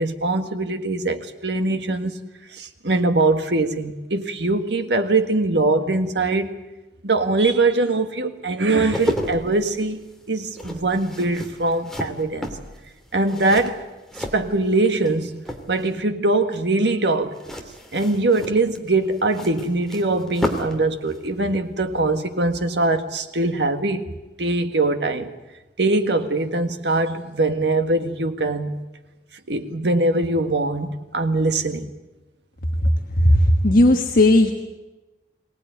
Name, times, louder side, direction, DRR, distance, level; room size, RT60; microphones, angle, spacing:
voice 1, 0.0-2.2 2.5-6.5 7.0-10.0 10.3-12.5 13.1-13.8 14.3-17.4 17.9-24.1 24.4-25.3 25.8-28.8 29.5-31.9, right 2 dB, 75° right, 1.7 m, -22 dB
sound 1, 8.6-15.1 15.4-16.0 17.3-20.8 21.1-21.3, equal, 5° left, 2.5 m, -32 dB
voice 2, 33.2-34.5, left 1 dB, 55° left, 1.5 m, -15 dB
23.0 x 18.5 x 9.3 m
head